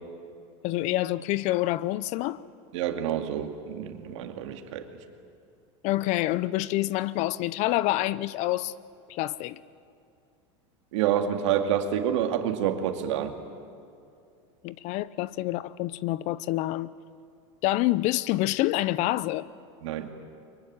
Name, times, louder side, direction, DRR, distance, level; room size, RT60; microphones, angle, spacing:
voice 1, 0.6-2.4 5.8-8.7 9.1-9.6 14.6-16.9 17.6-19.5, left 16 dB, 50° left, 0.7 m, -27 dB
voice 2, 2.7-4.9 10.9-13.3 19.8-20.1, right 9 dB, 80° right, 2.4 m, -28 dB
24.0 x 22.5 x 9.6 m
supercardioid pair, 140°, 15 cm